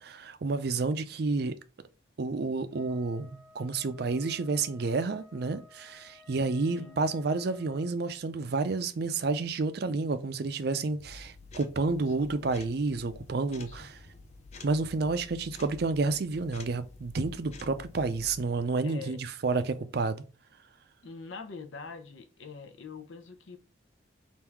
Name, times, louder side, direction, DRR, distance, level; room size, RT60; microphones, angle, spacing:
voice 1, 0.0-1.6 2.2-14.0 14.6-20.2, right 3 dB, 55° right, 0.4 m, -30 dB
Wind instrument woodwind instrument, 2.7-8.0, left 3 dB, ahead, 0.7 m, -57 dB
voice 2, 6.7-7.0 12.1-12.4 13.5-13.9 18.8-19.2 21.0-23.6, left 4 dB, 80° left, 0.7 m, -44 dB
sound 1, 11.0-18.4, left 3 dB, 35° left, 0.5 m, -49 dB
3.5 x 2.7 x 4.5 m
head